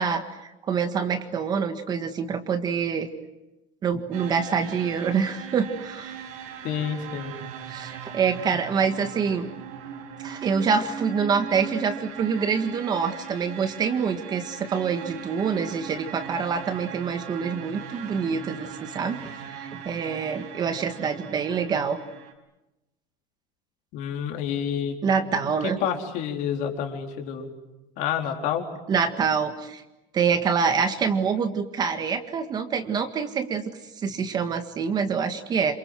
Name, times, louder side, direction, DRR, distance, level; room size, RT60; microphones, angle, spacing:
voice 1, 0.0-3.1 3.8-6.1 7.7-9.5 10.2-22.0 25.0-25.8 28.9-29.8 30.1-33.6 34.0-35.8, right 6 dB, 25° right, 8 dB, 1.7 m, -26 dB
sound 1, 4.1-22.3, right 7 dB, 75° right, 5.4 m, -39 dB
voice 2, 6.6-7.3 23.9-25.0 25.4-27.5 28.0-28.7, left 8 dB, 50° left, 3 dB, 4.0 m, -29 dB
28.5 x 27.5 x 7.7 m, 0.98 s
cardioid pair, 175°, 16 cm